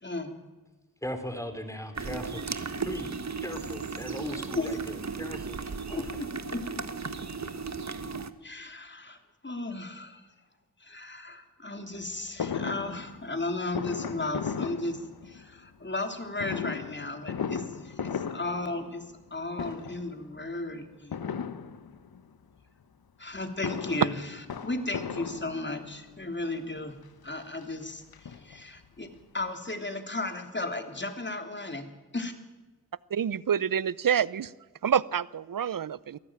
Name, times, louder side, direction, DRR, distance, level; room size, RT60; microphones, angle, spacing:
voice 1, 0.0-0.4 4.5-4.8 5.9-6.9 8.4-9.2 9.4-10.3 10.8-21.2 23.2-32.3, left 2 dB, 30° left, 6 dB, 3.4 m, -35 dB
voice 2, 1.0-2.5 2.8-3.2 3.4-5.6 5.9-6.1, equal, 10° left, 8 dB, 3.7 m, -38 dB
sound 1, 2.0-8.3, right 5 dB, 45° right, 1.4 m, -35 dB
Fireworks, 12.4-15.6 16.4-19.3 19.5-20.2 21.1-22.2 23.3-26.0 26.8-26.9 27.2-27.3 27.6-28.8 29.2-29.3 29.4-29.5, left 7 dB, 75° left, 1.3 m, -36 dB
voice 3, 33.1-34.5 34.8-36.2, right 8 dB, 60° right, 20 dB, 0.8 m, -27 dB
23.0 x 14.5 x 9.0 m, 1.3 s
cardioid pair, 40°, 37 cm